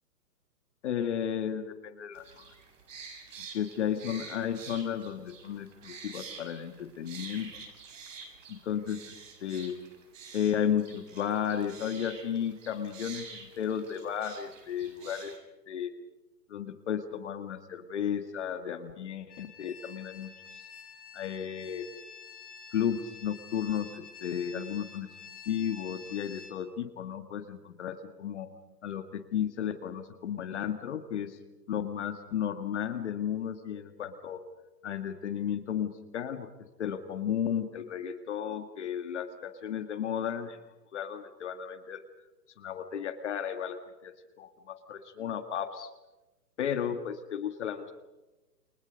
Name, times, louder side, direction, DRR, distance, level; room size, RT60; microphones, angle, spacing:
voice 1, 0.8-2.4 3.5-7.5 8.5-9.0 9.4-9.8 10.3-15.3 15.7-15.9 16.5-20.3 21.1-21.9 22.7-25.1 25.5-28.5 28.8-31.4 31.7-34.4 34.8-36.5 36.8-40.6 40.9-42.0 42.6-45.9 46.6-47.9, left 9 dB, 45° left, 8 dB, 2.0 m, -33 dB
sound 1, 2.1-15.4, right 5 dB, 50° right, 5.8 m, -48 dB
sound 2, 19.3-26.5, left 6 dB, 65° left, 4.7 m, -49 dB
29.0 x 28.0 x 5.2 m, 1.1 s
hypercardioid pair, 155°, 49 cm